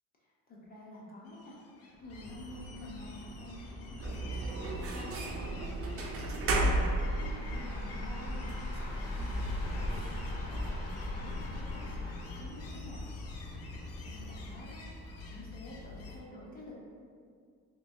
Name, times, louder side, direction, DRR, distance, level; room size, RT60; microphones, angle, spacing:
voice 1, 0.2-1.5 1.8-13.0 14.0-16.8, left 1 dB, 25° left, -5 dB, 0.8 m, -49 dB
sound 1, 1.3-16.2, left 3 dB, 50° left, 0.5 m, -54 dB
sound 2, 1.9-14.6, left 1 dB, 85° left, 0.6 m, -41 dB
sound 3, 4.0-16.2, right 1 dB, 45° right, 0.4 m, -37 dB
3.0 x 2.7 x 2.6 m, 2.1 s
cardioid pair, 100°, 33 cm